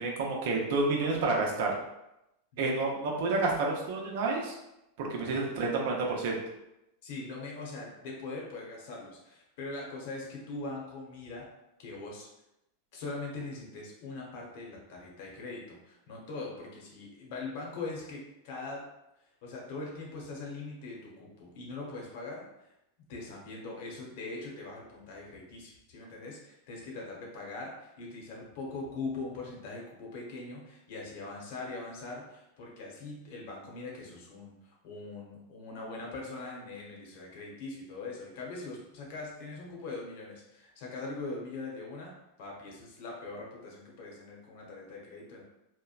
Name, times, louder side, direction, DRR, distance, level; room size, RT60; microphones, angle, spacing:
voice 1, 0.0-1.7 2.6-4.5 5.0-6.4, right 3 dB, 65° right, -1 dB, 0.6 m, -29 dB
voice 2, 2.5-2.8 7.0-11.5 11.8-12.3 12.9-18.8 19.4-22.7 23.1-45.4, left 3 dB, 60° left, -2 dB, 0.8 m, -41 dB
2.9 x 2.1 x 2.3 m, 0.88 s
hypercardioid pair, 100°, 0 cm